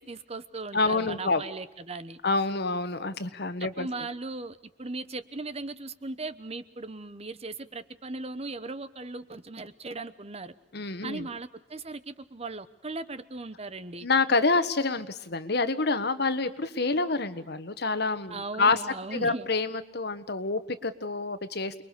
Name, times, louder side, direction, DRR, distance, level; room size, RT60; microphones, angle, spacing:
voice 1, 0.0-2.2 3.6-10.5 11.0-14.1 18.3-19.5, right 3 dB, 35° right, 13 dB, 1.1 m, -38 dB
voice 2, 0.7-1.4 2.2-3.9 10.7-11.3 14.0-18.8 19.1-21.7, left 3 dB, 65° left, 11 dB, 1.5 m, -27 dB
29.0 x 22.0 x 6.8 m, 0.81 s
head